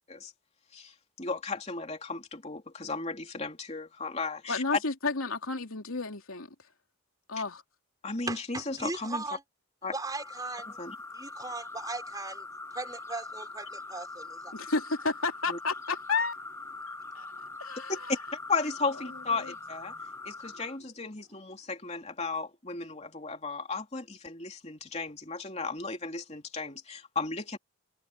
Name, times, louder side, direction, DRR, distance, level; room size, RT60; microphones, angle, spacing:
voice 1, 0.7-4.6 8.0-9.2 9.8-9.9 10.8-10.9 15.5-15.6 18.1-18.2 18.5-19.9 20.2-27.6, left 4 dB, 30° left, 3.2 m, -35 dB
voice 2, 4.5-6.5 7.3-7.6 14.5-16.3 16.9-17.3 17.6-17.9 19.4-19.5, left 4 dB, 80° left, 3.0 m, -31 dB
voice 3, 8.2-9.4 9.9-10.8 11.1-14.5 17.0-17.6 20.0-20.3, right 3 dB, 15° right, 4.5 m, -39 dB
sound 1, 9.9-20.8, left 3 dB, 15° left, 1.9 m, -43 dB
head